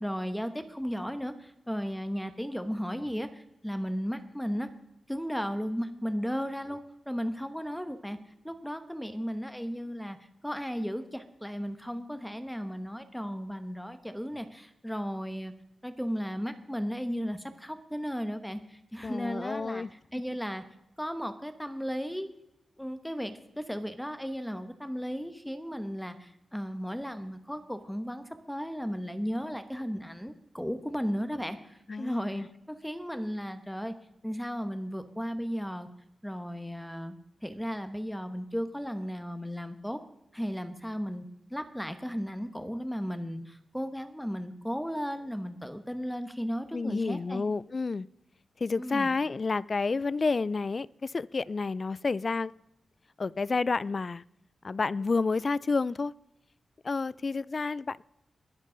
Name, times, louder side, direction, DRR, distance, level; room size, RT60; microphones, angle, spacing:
voice 1, 0.0-4.7 5.1-6.8 7.1-8.2 8.4-10.2 10.4-15.5 15.8-20.6 21.0-22.3 22.8-33.9 34.2-35.9 36.2-37.2 37.4-40.0 40.3-41.2 41.5-47.4 48.8-49.2, equal, 5° left, 9 dB, 1.0 m, -35 dB
voice 2, 19.0-19.9 31.9-32.5 46.7-48.1 48.6-52.5 53.2-54.2 54.6-56.1 56.8-58.1, left 4 dB, 45° left, 22 dB, 0.3 m, -30 dB
21.0 x 7.4 x 3.9 m, 0.84 s
cardioid pair, 75°, 0 cm